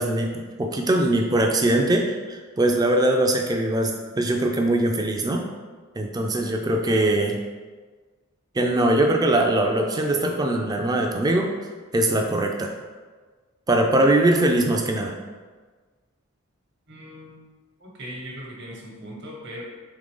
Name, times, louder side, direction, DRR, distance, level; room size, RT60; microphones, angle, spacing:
voice 1, 0.0-5.4 6.0-7.4 8.6-11.5 11.9-12.7 13.7-15.1, right 1 dB, 20° right, 2 dB, 0.3 m, -21 dB
voice 2, 16.9-17.4 17.8-19.6, equal, 55° right, -3 dB, 1.1 m, -39 dB
3.7 x 3.2 x 3.7 m, 1.4 s
head